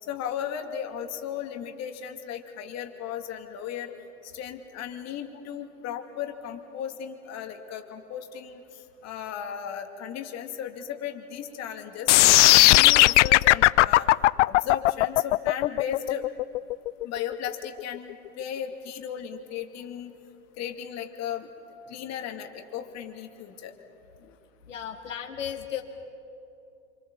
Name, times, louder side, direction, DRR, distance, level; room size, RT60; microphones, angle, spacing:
voice 1, 0.0-3.9 4.2-14.1 14.4-16.3 17.0-20.1 20.6-23.7 24.2-24.4, left 9 dB, 45° left, 5 dB, 2.6 m, -36 dB
sound 1, 12.1-18.1, left 17 dB, 70° left, 0.6 m, -17 dB
voice 2, 24.7-25.8, left 9 dB, 85° left, 2 dB, 2.1 m, -34 dB
27.5 x 26.0 x 7.3 m, 2.8 s
hypercardioid pair, 85°, 37 cm